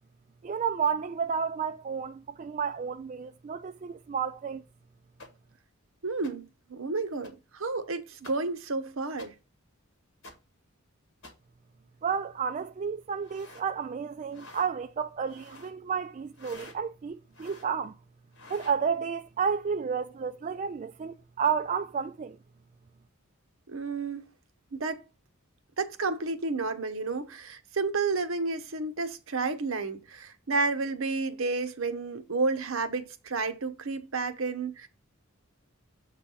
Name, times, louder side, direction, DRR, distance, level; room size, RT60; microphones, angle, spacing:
voice 1, 0.4-4.6 12.0-17.9 18.5-22.4, right 6 dB, 35° right, 0.3 m, -31 dB
sound 1, 5.2-5.3 6.2-6.3 7.2-7.3 8.2-8.3 9.2-9.3 10.2-10.3 11.2-11.3 13.2-13.7 14.3-14.7 15.2-15.7 16.3-16.7 17.3-17.7 18.3-18.8, left 2 dB, 60° left, 2.1 m, -49 dB
voice 2, 6.0-9.3 23.7-24.3 24.7-25.0 25.8-34.9, right 3 dB, 65° right, 0.9 m, -31 dB
7.5 x 3.3 x 5.5 m
head